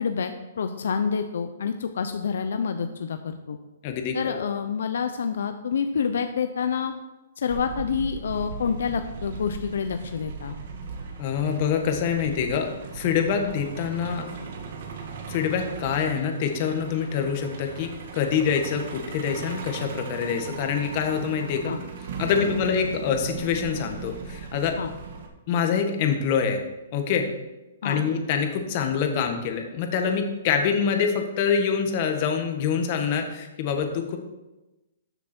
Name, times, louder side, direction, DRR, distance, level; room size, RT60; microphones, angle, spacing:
voice 1, 0.0-3.6 4.1-6.9 7.4-10.5 21.7-21.8 22.3-22.5 24.8-24.9 27.8-28.0, left 6 dB, 75° left, 8 dB, 0.7 m, -28 dB
voice 2, 3.8-4.5 11.2-12.7 12.9-14.3 15.3-21.7 22.2-24.7 25.5-26.6 26.9-27.2 27.8-34.2, left 7 dB, 35° left, 4 dB, 1.5 m, -25 dB
Truck, 7.5-25.3, right 5 dB, 55° right, 1.8 m, -38 dB
13.0 x 7.1 x 4.5 m, 1.1 s
hypercardioid pair, 160°, 0 cm